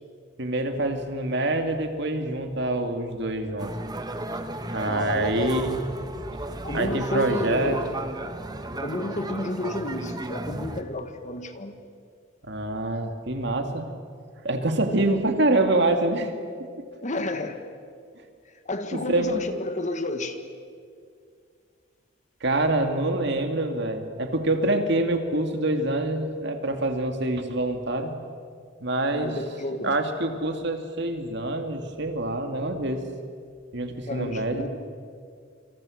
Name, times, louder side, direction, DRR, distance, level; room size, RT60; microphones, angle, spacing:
voice 1, 0.4-3.7 4.7-5.9 6.7-7.8 12.4-13.9 14.4-16.3 18.9-19.4 22.4-28.1 28.8-29.3 29.8-33.0 33.7-34.6, right 2 dB, 60° right, 6 dB, 2.4 m, -26 dB
sound 1, 3.6-10.8, right 1 dB, 20° right, 1.3 m, -34 dB
voice 2, 4.9-5.7 6.6-7.9 8.8-11.8 17.0-17.6 18.7-20.4 29.1-29.9 34.1-34.7, left 1 dB, 40° left, 8 dB, 1.7 m, -31 dB
27.5 x 26.0 x 6.5 m, 2.2 s
head